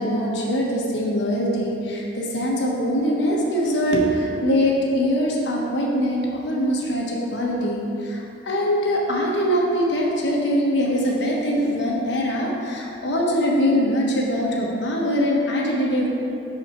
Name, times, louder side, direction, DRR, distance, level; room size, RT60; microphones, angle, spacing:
voice 1, 0.0-16.1, equal, 75° left, -3 dB, 1.1 m, -22 dB
6.0 x 4.9 x 4.4 m, 2.7 s
head